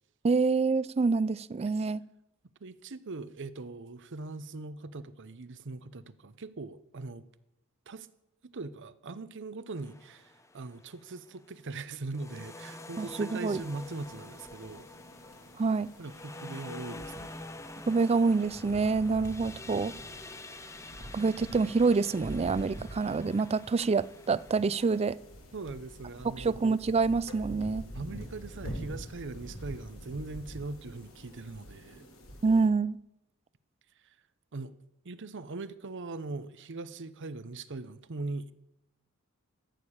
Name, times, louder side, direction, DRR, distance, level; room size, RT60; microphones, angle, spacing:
voice 1, 0.2-2.0 13.0-13.6 15.6-15.9 17.9-20.0 21.1-25.2 26.4-27.8 32.4-33.0, right 4 dB, 30° right, 0.4 m, -27 dB
voice 2, 2.6-7.2 7.9-8.1 8.4-14.9 16.0-17.4 25.5-26.5 27.9-32.1 34.0-34.1 34.5-34.7 35.0-38.5, right 3 dB, 60° right, 0.7 m, -41 dB
sound 1, 9.8-11.2 12.1-25.1, left 2 dB, 15° left, 0.7 m, -47 dB
sound 2, 13.5-32.7, equal, 65° left, 2.4 m, -46 dB
14.0 x 6.7 x 8.7 m
head